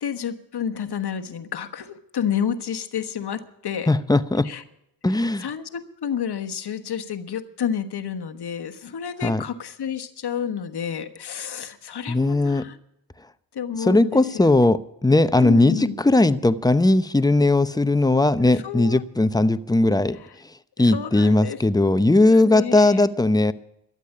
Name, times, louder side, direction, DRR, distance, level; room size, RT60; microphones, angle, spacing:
voice 1, 0.0-3.9 4.4-4.6 5.1-12.8 13.5-14.5 15.4-16.0 18.5-19.1 20.1-20.4 20.8-21.6 22.2-23.0, left 8 dB, 55° left, 8 dB, 1.4 m, -30 dB
voice 2, 3.9-4.5 5.0-5.4 9.2-9.4 12.1-12.7 13.8-20.2 20.8-23.5, left 2 dB, 10° left, 13 dB, 0.8 m, -18 dB
13.0 x 8.3 x 10.0 m, 0.81 s
supercardioid pair, 45°, 46 cm